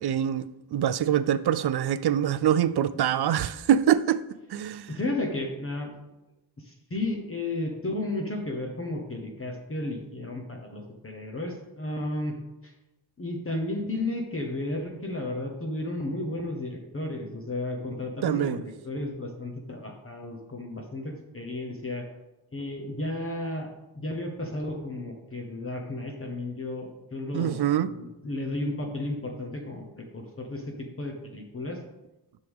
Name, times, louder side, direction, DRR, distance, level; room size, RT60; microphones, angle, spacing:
voice 1, 0.0-4.2 4.5-4.9 18.2-18.6 27.3-27.9, right 10 dB, 55° right, 0.5 m, -24 dB
voice 2, 4.9-5.9 6.6-12.4 12.6-12.7 13.2-22.0 22.5-23.7 23.9-31.8, left 2 dB, 25° left, 1.1 m, -33 dB
10.5 x 6.3 x 3.6 m
wide cardioid pair, 140°, 49 cm